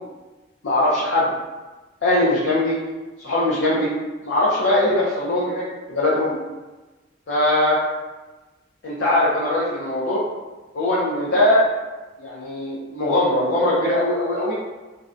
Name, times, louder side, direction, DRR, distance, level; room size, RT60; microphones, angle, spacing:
voice 1, 0.6-1.3 2.0-2.8 3.2-3.9 4.2-6.3 7.3-7.8 8.8-10.2 10.7-11.6 12.2-14.5, left 1 dB, 75° left, -8 dB, 0.5 m, -20 dB
2.6 x 2.1 x 2.4 m, 1.2 s
head